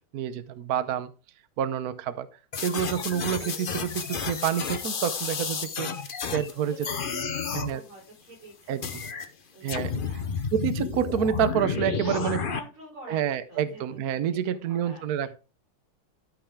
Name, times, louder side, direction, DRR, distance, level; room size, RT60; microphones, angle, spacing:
voice 1, 0.1-1.1 1.6-2.3 2.6-5.9 6.3-6.8 7.5-7.8 8.7-8.8 9.6-9.9 10.5-12.4 13.1-15.4, right 9 dB, 60° right, 12 dB, 1.0 m, -28 dB
sound 1, 2.5-6.5 6.8-7.7 8.8-9.2 9.7-12.6, left 5 dB, 80° left, 0.4 m, -31 dB
voice 2, 6.3-10.5 12.0-14.0 14.5-15.3, right 1 dB, 85° right, -3 dB, 5.7 m, -47 dB
13.0 x 5.6 x 3.6 m, 0.33 s
omnidirectional pair, 2.3 m